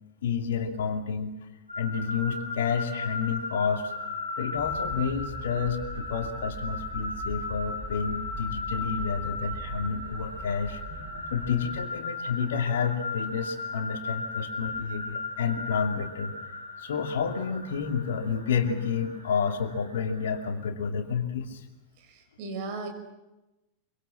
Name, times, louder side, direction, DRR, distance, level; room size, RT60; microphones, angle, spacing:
voice 1, 0.2-1.3 1.8-3.9 4.4-16.4 16.8-21.6, left 6 dB, 60° left, 5 dB, 2.6 m, -30 dB
sound 1, 1.7-20.5, left 3 dB, 85° right, 6.5 m, -37 dB
sound 2, 4.6-11.6, right 2 dB, 10° left, 7.1 m, -41 dB
voice 2, 22.0-22.9, right 3 dB, 45° right, 5 dB, 5.6 m, -36 dB
25.5 x 24.0 x 7.6 m, 1.0 s
figure-of-eight pair, 90°, 0 cm